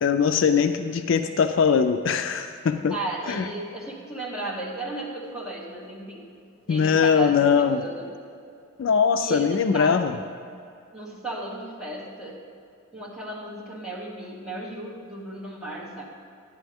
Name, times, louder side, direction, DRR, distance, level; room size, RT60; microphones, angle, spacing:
voice 1, 0.0-3.0 3.3-3.5 6.7-7.9 8.8-10.2, left 6 dB, 60° left, 8 dB, 0.4 m, -21 dB
voice 2, 2.9-6.2 6.7-8.1 9.2-10.1 10.9-12.4 12.9-16.0, right 2 dB, ahead, -8 dB, 1.8 m, -35 dB
11.0 x 10.5 x 3.5 m, 2.4 s
head